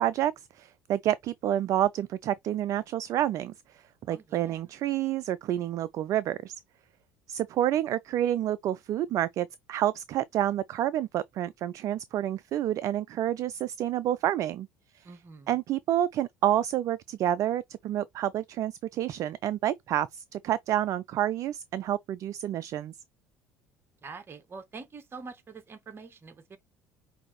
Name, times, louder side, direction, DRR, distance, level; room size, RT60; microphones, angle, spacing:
voice 1, 0.0-6.6 7.3-14.7 14.9-15.1 15.5-22.9, right 12 dB, 45° right, 0.3 m, -29 dB
voice 2, 4.1-4.6 15.0-15.5 24.0-26.6, right 4 dB, 30° right, 1.1 m, -45 dB
5.6 x 2.7 x 3.1 m
hypercardioid pair, 60°, 8 cm